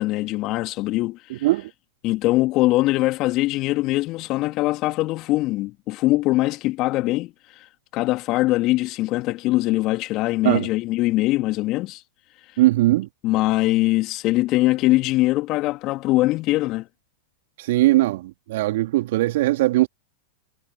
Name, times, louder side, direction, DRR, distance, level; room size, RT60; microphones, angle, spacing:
voice 1, 0.0-1.5 2.0-12.0 12.4-12.6 13.2-16.9, left 18 dB, 40° left, 2.6 m, -22 dB
voice 2, 1.3-1.7 10.4-10.7 12.6-13.1 17.6-19.9, right 17 dB, 60° right, 3.2 m, -20 dB
figure-of-eight pair, 95°, 0 cm